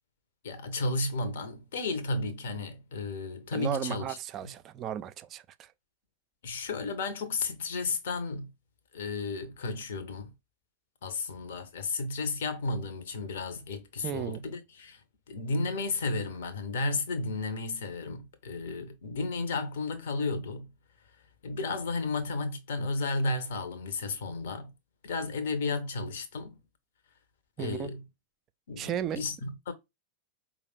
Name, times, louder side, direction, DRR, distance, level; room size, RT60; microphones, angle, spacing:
voice 1, 0.4-4.5 6.4-8.5 8.9-10.3 11.0-20.7 21.4-24.7 25.0-26.6 27.6-28.0 28.7-29.7, left 3 dB, 60° left, 0.9 m, -33 dB
voice 2, 3.5-5.7 14.0-14.4 27.6-27.9 28.8-29.2, right 10 dB, 30° right, 0.4 m, -35 dB
4.8 x 2.4 x 3.2 m
figure-of-eight pair, 90°, 0 cm